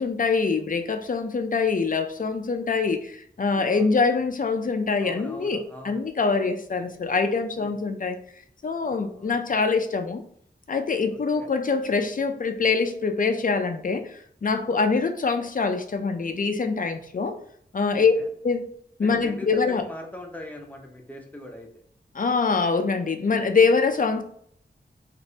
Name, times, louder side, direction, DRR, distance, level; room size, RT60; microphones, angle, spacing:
voice 1, 0.0-8.2 8.6-10.2 10.7-17.4 17.7-18.1 18.4-18.7 19.0-19.8 22.1-24.2, left 4 dB, 45° left, 0.5 m, -24 dB
voice 2, 3.4-3.9 5.0-6.0 7.5-7.8 9.1-9.3 11.1-11.5 17.9-18.3 19.0-21.7, left 1 dB, 10° left, 0.8 m, -41 dB
3.1 x 2.6 x 2.7 m
cardioid pair, 50°, 19 cm